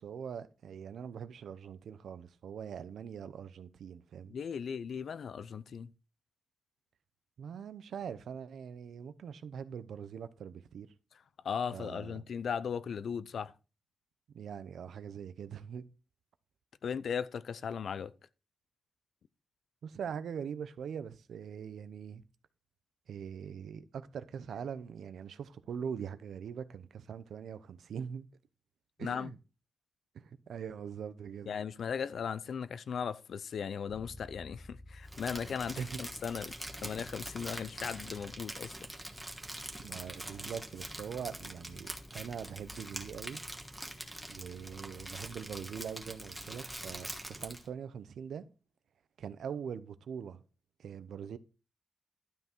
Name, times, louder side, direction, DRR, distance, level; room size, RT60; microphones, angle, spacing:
voice 1, 0.0-4.3 7.4-10.9 11.7-12.2 14.3-15.8 19.8-22.2 23.1-28.3 29.0-29.3 30.1-31.6 35.8-36.0 39.8-43.4 44.3-48.5 49.2-50.4 50.8-51.4, right 7 dB, 80° right, 0.7 m, -42 dB
voice 2, 4.3-5.9 11.4-13.5 16.8-18.1 29.0-29.3 31.5-38.9, left 7 dB, 65° left, 0.5 m, -37 dB
Bass guitar, 33.9-43.7, left 1 dB, 25° left, 0.7 m, -56 dB
Crumpling crinkling, 35.1-47.7, right 1 dB, 5° right, 1.3 m, -44 dB
12.0 x 5.6 x 4.5 m
wide cardioid pair, 160°, 0 cm